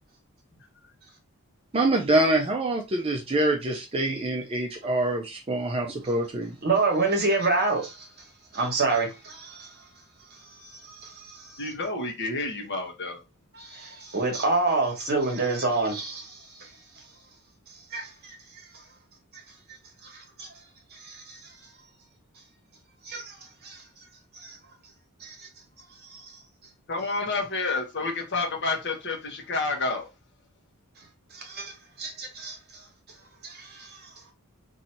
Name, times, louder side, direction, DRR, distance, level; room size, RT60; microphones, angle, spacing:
voice 1, 1.7-6.6, right 1 dB, 25° right, 0.5 m, -25 dB
voice 2, 6.6-8.1 8.5-9.7 10.6-11.6 13.5-16.7 17.9-18.4 19.7-20.5 20.9-21.4 23.0-23.4 23.6-23.8 24.3-24.6 25.2-25.5 26.1-26.4 31.3-32.6 33.4-34.0, right 3 dB, 45° right, 1.2 m, -28 dB
voice 3, 11.6-13.2 26.9-30.1, left 3 dB, 50° left, 1.0 m, -29 dB
2.8 x 2.7 x 4.4 m
head